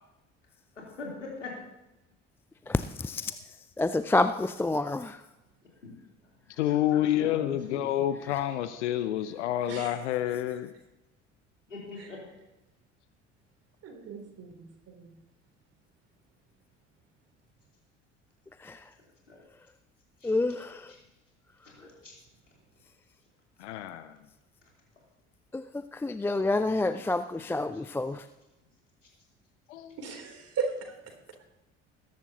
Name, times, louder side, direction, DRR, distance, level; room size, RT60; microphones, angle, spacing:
voice 1, 0.8-1.5 5.8-5.9 6.7-7.9 11.7-12.2 19.3-19.4 20.2-20.3 21.8-22.1 26.8-26.9 27.5-27.6, left 3 dB, 85° left, -3 dB, 3.4 m, -43 dB
voice 2, 2.7-3.3 3.8-5.2 18.6-18.8 20.2-20.9 25.5-28.2, left 2 dB, 5° left, 12 dB, 0.4 m, -28 dB
voice 3, 6.6-10.7 23.6-24.1 29.7-30.0, left 12 dB, 70° left, 12 dB, 0.7 m, -28 dB
voice 4, 13.8-15.1 30.0-30.7, right 5 dB, 40° right, 3 dB, 3.3 m, -36 dB
20.5 x 10.5 x 2.9 m, 0.95 s
figure-of-eight pair, 55°, 36 cm